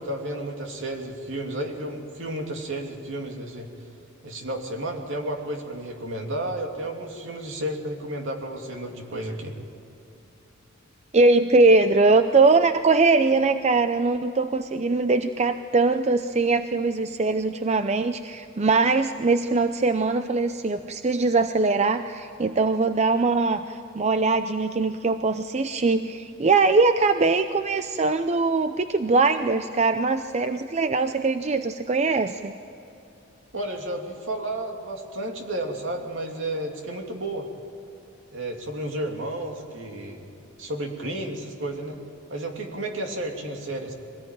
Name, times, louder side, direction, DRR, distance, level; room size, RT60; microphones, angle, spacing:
voice 1, 0.0-3.7 4.2-9.5 33.5-37.5 38.3-42.0 42.3-43.9, right 1 dB, 70° right, 2 dB, 3.0 m, -32 dB
voice 2, 11.1-32.5, right 3 dB, 35° right, 9 dB, 0.6 m, -21 dB
24.0 x 18.0 x 9.2 m, 2.8 s
head